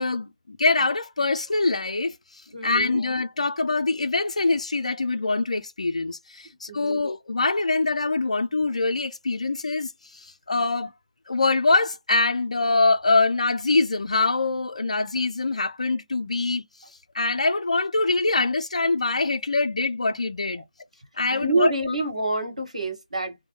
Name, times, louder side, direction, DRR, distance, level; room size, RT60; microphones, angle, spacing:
voice 1, 0.0-10.9 11.3-16.6 17.1-20.6 21.2-21.7, left 3 dB, 75° left, 0.5 m, -24 dB
voice 2, 2.5-3.0 6.7-7.0 21.3-23.4, right 2 dB, 85° right, 1.2 m, -27 dB
2.2 x 2.2 x 3.0 m
figure-of-eight pair, 140°, 4 cm